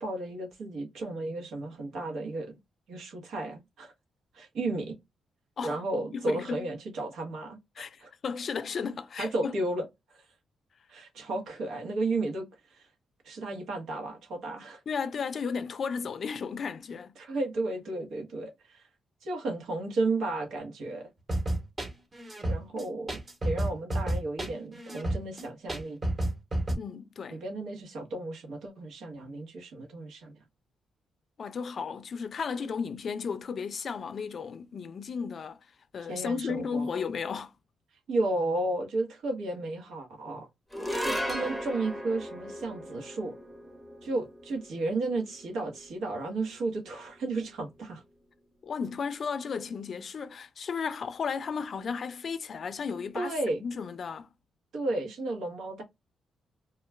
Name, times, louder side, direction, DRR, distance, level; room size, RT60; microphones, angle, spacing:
voice 1, 0.0-2.6 2.9-3.9 4.3-5.0 5.6-8.1 9.2-9.8 10.1-10.3 10.9-12.9 13.2-14.8 17.2-18.9 19.2-21.1 22.4-26.0 27.3-30.4 36.1-36.9 38.1-40.5 41.0-43.3 44.0-48.0 53.1-53.6 54.7-55.8, right 2 dB, 80° right, 1.0 m, -33 dB
voice 2, 6.1-6.7 7.8-9.5 14.9-17.1 26.8-27.4 31.4-35.6 35.9-37.5 48.6-53.3 53.6-54.3, left 6 dB, 50° left, 0.4 m, -34 dB
sound 1, 21.3-26.8, right 1 dB, 30° right, 1.1 m, -31 dB
sound 2, 40.7-47.2, equal, 5° right, 0.8 m, -37 dB
2.3 x 2.3 x 3.2 m
cardioid pair, 105°, 0 cm